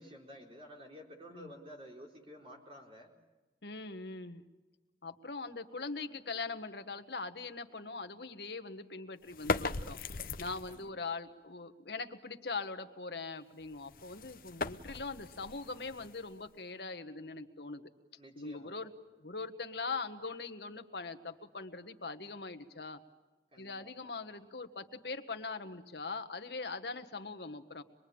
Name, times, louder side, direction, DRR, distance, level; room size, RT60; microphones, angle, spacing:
voice 1, 0.0-3.1 10.7-10.9 18.2-18.9 23.5-23.9, equal, 30° right, 0 dB, 4.2 m, -52 dB
voice 2, 3.6-4.4 5.0-10.0 10.4-17.9 18.4-18.9 19.2-23.0 23.6-27.8, left 3 dB, 70° left, 8 dB, 1.5 m, -41 dB
sound 1, 9.3-10.9 13.6-16.6, left 3 dB, 50° left, 0.9 m, -39 dB
26.0 x 22.0 x 8.7 m, 1.2 s
head